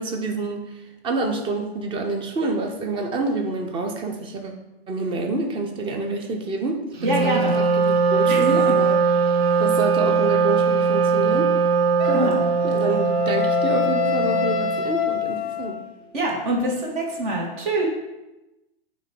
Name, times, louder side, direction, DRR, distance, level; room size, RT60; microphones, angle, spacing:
voice 1, 0.0-4.5 4.9-9.0 9.6-11.5 12.0-15.8, right 3 dB, 15° right, 4 dB, 0.7 m, -27 dB
voice 2, 7.0-7.5 8.3-8.5 9.5-9.6 12.1-12.4 16.1-17.9, right 1 dB, 50° right, -2 dB, 2.1 m, -25 dB
Wind instrument woodwind instrument, 7.0-14.8, right 5 dB, 75° right, 1.1 m, -20 dB
Wind instrument woodwind instrument 2, 12.0-16.0, left 8 dB, 15° left, 0.9 m, -26 dB
8.7 x 3.2 x 4.5 m, 0.99 s
hypercardioid pair, 125°, 31 cm